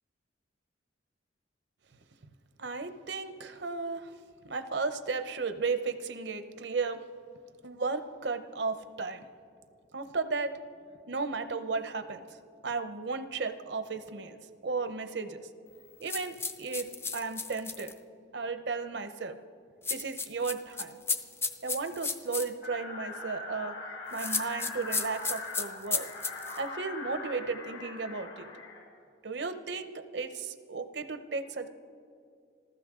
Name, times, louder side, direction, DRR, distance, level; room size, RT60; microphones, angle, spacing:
voice 1, 2.6-4.1 4.4-7.0 7.6-9.2 9.9-10.6 11.1-15.5 16.0-17.9 18.3-19.4 19.9-21.0 21.6-23.8 24.1-26.1 26.6-28.5 29.2-31.7, right 4 dB, 65° right, 10 dB, 0.8 m, -34 dB
sound 1, 16.1-17.9 19.8-22.5 24.1-26.6, left 4 dB, 15° left, 0.6 m, -33 dB
sound 2, 22.6-28.8, left 3 dB, 85° left, 4.0 m, -42 dB
25.5 x 14.5 x 3.7 m, 2.3 s
head